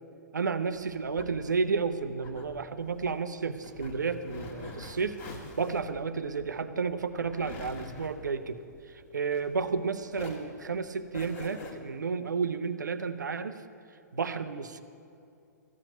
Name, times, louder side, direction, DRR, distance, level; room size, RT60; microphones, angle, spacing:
voice 1, 0.3-8.6 8.9-13.6 14.1-14.8, right 5 dB, 75° right, 10 dB, 0.7 m, -32 dB
sound 1, 0.7-9.8 10.1-11.7, left 3 dB, 40° left, 1.8 m, -46 dB
14.5 x 5.9 x 9.0 m, 2.6 s
figure-of-eight pair, 115°, 10 cm